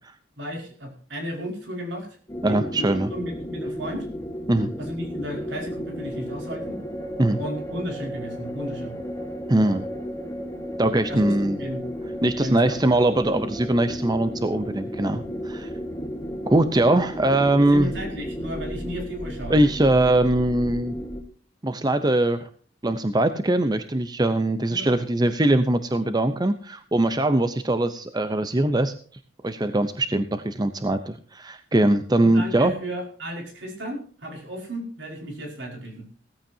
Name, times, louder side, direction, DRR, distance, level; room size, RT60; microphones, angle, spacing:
voice 1, 0.4-2.1 2.5-4.1 4.8-6.8 7.4-8.9 11.1-11.9 12.4-12.8 17.6-19.6 24.2-25.0 32.2-36.0, equal, 65° right, 2 dB, 5.1 m, -34 dB
sound 1, 2.3-21.2, equal, 15° left, 1.6 m, -33 dB
voice 2, 2.4-3.1 4.5-4.7 7.2-7.4 9.5-9.9 10.8-11.6 12.2-15.7 16.5-17.9 19.5-21.0 21.6-22.5 22.8-28.9 29.4-32.7, right 1 dB, 20° right, 10 dB, 0.7 m, -21 dB
16.5 x 14.5 x 2.8 m, 0.44 s
head